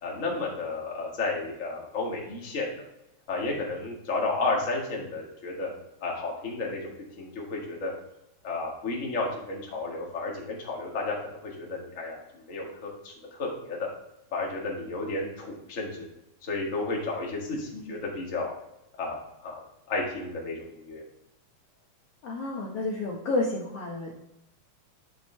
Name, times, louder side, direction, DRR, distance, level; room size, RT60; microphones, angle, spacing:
voice 1, 0.0-2.7 3.3-5.7 6.0-6.9 7.2-7.9 8.4-12.2 12.5-13.9 14.3-16.1 16.4-18.5 19.0-21.0, left 3 dB, 30° left, -2 dB, 1.8 m, -32 dB
voice 2, 22.2-24.1, left 2 dB, 60° left, -2 dB, 1.9 m, -30 dB
10.0 x 6.4 x 3.3 m, 0.83 s
omnidirectional pair, 3.5 m